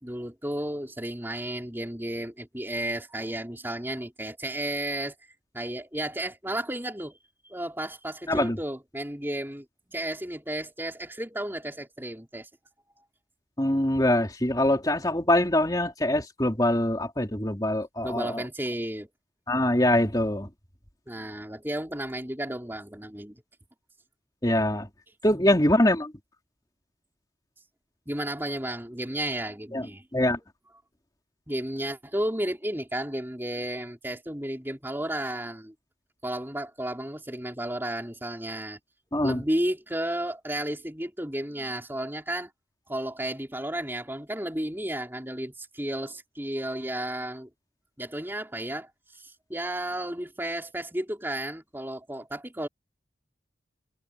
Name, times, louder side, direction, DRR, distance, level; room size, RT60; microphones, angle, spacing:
voice 1, 0.0-5.1 5.5-7.2 7.5-12.5 13.0-13.1 18.0-19.1 21.1-23.4 25.3-25.7 28.1-30.1 31.5-35.7 36.2-38.8 39.2-42.5 42.9-47.5 48.0-52.7, right 1 dB, 10° right, 4.0 m, -33 dB
voice 2, 13.6-18.4 19.5-20.5 24.4-24.9 25.2-26.1 29.7-29.9 30.1-30.4 39.1-39.4, left 1 dB, 20° left, 3.5 m, -23 dB
head